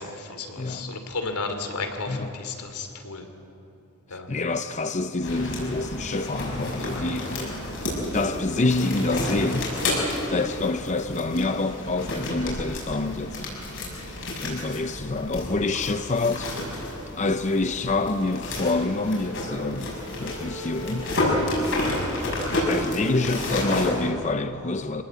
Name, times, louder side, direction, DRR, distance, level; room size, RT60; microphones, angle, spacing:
voice 1, 0.0-3.2 4.1-4.3, left 3 dB, 85° left, 2.9 m, -33 dB
voice 2, 0.6-1.0 2.1-2.4 4.1-7.6 8.1-9.7 10.3-13.5 14.4-16.6 17.2-21.1 22.7-25.0, left 3 dB, 30° left, 0.6 m, -27 dB
sound 1, 5.2-24.1, left 1 dB, 60° left, 7.2 m, -30 dB
26.5 x 19.0 x 8.2 m
head